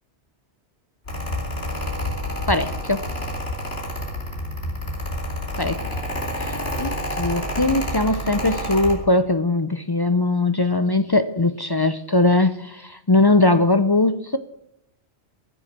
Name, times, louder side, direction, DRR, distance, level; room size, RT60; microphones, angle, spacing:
Mechanical fan, 1.0-8.9, left 1 dB, 65° left, 2.8 m, -28 dB
voice 1, 2.5-3.1 5.6-5.8 6.4-14.4, left 2 dB, 30° left, 0.5 m, -20 dB
18.5 x 7.0 x 7.4 m
omnidirectional pair, 1.1 m